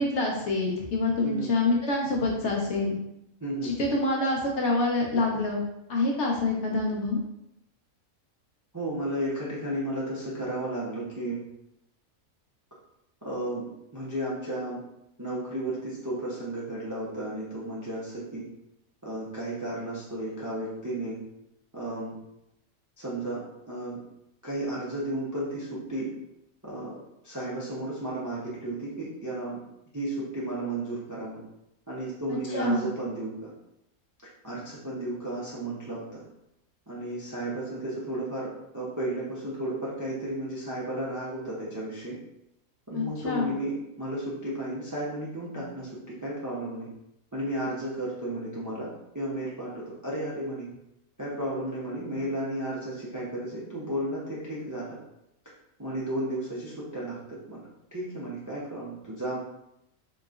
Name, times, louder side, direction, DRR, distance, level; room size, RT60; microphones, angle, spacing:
voice 1, 0.0-3.0 3.6-5.6 5.9-7.2 32.3-32.9 42.9-43.5, left 2 dB, 60° left, -1 dB, 0.9 m, -26 dB
voice 2, 3.4-3.8 8.7-11.4 13.2-13.6 13.9-14.8 15.2-18.4 19.0-21.2 21.7-22.2 23.0-24.0 24.4-26.1 26.6-27.0 27.2-29.6 29.9-31.4 31.9-33.5 34.4-36.2 36.9-42.2 42.9-45.9 46.2-46.9 47.3-48.9 49.1-50.7 51.2-55.0 55.8-57.6 57.9-59.4, right 1 dB, 25° right, -6 dB, 0.4 m, -33 dB
3.8 x 2.9 x 2.4 m, 0.82 s
omnidirectional pair, 1.5 m